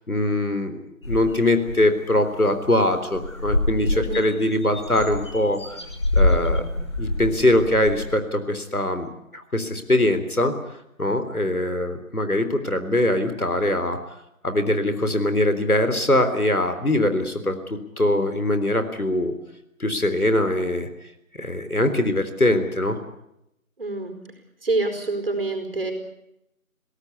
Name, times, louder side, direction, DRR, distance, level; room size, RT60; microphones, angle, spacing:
voice 1, 0.1-5.8 6.1-6.6 7.0-10.5 11.0-14.0 14.4-17.6 18.0-19.3 19.8-20.9 21.4-23.0, left 1 dB, 85° left, 9 dB, 3.7 m, -22 dB
sound 1, 1.0-1.8 2.2-2.3 2.6-2.8 3.1-8.1, left 2 dB, 20° left, 1.6 m, -25 dB
voice 2, 3.9-4.3 23.8-24.1 24.6-25.9, right 2 dB, 40° right, 6 dB, 4.7 m, -26 dB
23.5 x 18.0 x 8.4 m, 0.82 s
figure-of-eight pair, 160°, 43 cm